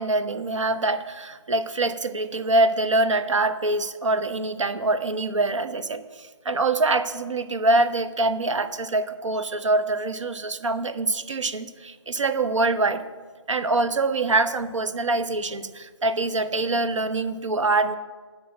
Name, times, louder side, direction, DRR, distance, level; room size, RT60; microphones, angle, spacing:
voice 1, 0.0-13.0 13.5-17.9, right 2 dB, 70° right, 13 dB, 0.9 m, -24 dB
11.0 x 6.2 x 7.6 m, 1.4 s
figure-of-eight pair, 155°, 16 cm